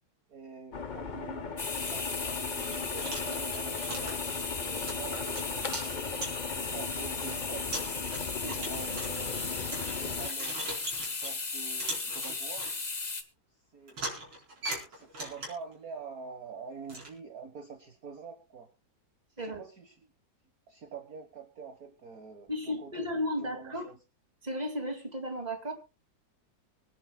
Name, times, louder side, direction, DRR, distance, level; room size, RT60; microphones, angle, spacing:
voice 1, 0.3-7.7 8.3-9.7 9.9-10.6 11.0-12.7 13.7-14.3 14.8-18.7 19.4-20.0 20.7-24.0, right 5 dB, 50° right, 5 dB, 1.8 m, -46 dB
sound 1, 0.7-10.3, left 5 dB, 55° left, 0.5 m, -38 dB
sound 2, 1.6-13.2, left 4 dB, 25° left, 1.1 m, -36 dB
sound 3, 2.0-2.1 2.6-6.7 7.2-7.3 7.7-11.4 11.8-12.7 13.9-15.7 16.9-17.1, right 1 dB, 85° right, 5.3 m, -40 dB
voice 2, 22.5-23.8 24.4-25.7, equal, 20° right, 5 dB, 2.4 m, -34 dB
25.0 x 10.5 x 2.3 m, 0.29 s
omnidirectional pair, 2.1 m